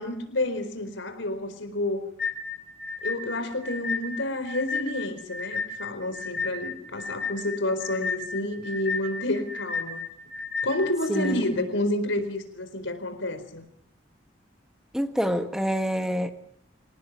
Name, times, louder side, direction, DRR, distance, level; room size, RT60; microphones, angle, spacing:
voice 1, 0.0-2.0 3.0-10.0 10.6-13.7, left 1 dB, 75° left, 9 dB, 4.5 m, -29 dB
sound 1, 2.2-11.3, left 4 dB, 60° left, 4.1 m, -33 dB
voice 2, 11.1-11.7 14.9-16.3, equal, 5° right, 7 dB, 1.4 m, -27 dB
26.0 x 19.0 x 9.5 m, 0.73 s
head